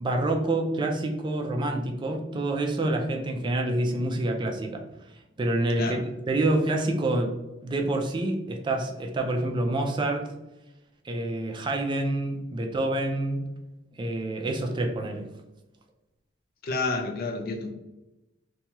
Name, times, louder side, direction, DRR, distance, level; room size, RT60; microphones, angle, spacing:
voice 1, 0.0-4.8 5.4-6.0 6.3-7.3 7.6-10.3 11.0-13.4 14.0-15.3, right 2 dB, 25° right, 0.3 m, -27 dB
voice 2, 16.6-17.7, left 3 dB, 50° left, 0.4 m, -29 dB
2.8 x 2.2 x 2.8 m
head